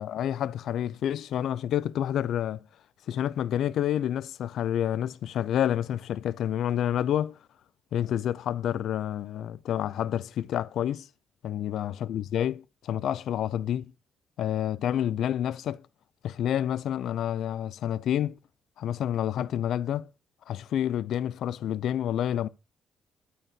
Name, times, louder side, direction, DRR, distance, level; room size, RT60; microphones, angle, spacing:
voice 1, 0.0-2.6 3.1-7.4 7.9-11.1 11.4-13.9 14.4-15.8 16.2-18.4 18.8-20.1 20.5-22.5, left 10 dB, 75° left, 0.6 m, -29 dB
12.5 x 4.2 x 8.2 m
cardioid pair, 90°, 0 cm